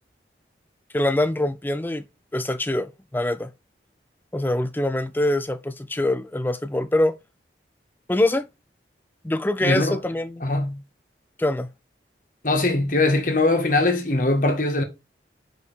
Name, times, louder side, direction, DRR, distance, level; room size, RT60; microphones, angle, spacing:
voice 1, 0.9-2.0 2.3-3.5 4.3-7.1 8.1-8.5 9.2-10.5 11.4-11.7, left 1 dB, 10° left, 0.4 m, -24 dB
voice 2, 9.6-10.0 10.4-10.8 12.4-14.8, left 2 dB, 45° left, 1.7 m, -21 dB
5.2 x 5.0 x 6.2 m
head